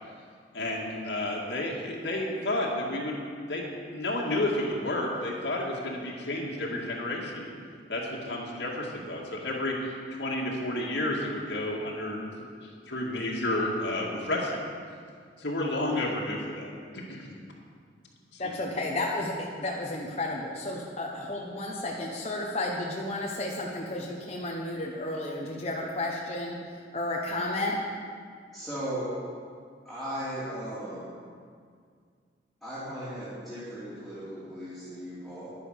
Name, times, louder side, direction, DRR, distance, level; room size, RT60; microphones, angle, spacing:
voice 1, 0.5-3.2 3.5-7.5 7.9-14.7 15.4-17.4 18.3-18.4, left 1 dB, 75° left, -3 dB, 2.2 m, -31 dB
voice 2, 18.4-27.8, left 2 dB, 35° left, -2 dB, 1.1 m, -32 dB
voice 3, 28.5-29.1 29.8-31.2 32.6-35.5, right 1 dB, ahead, -12 dB, 2.9 m, -37 dB
11.0 x 10.0 x 6.5 m, 2.1 s
head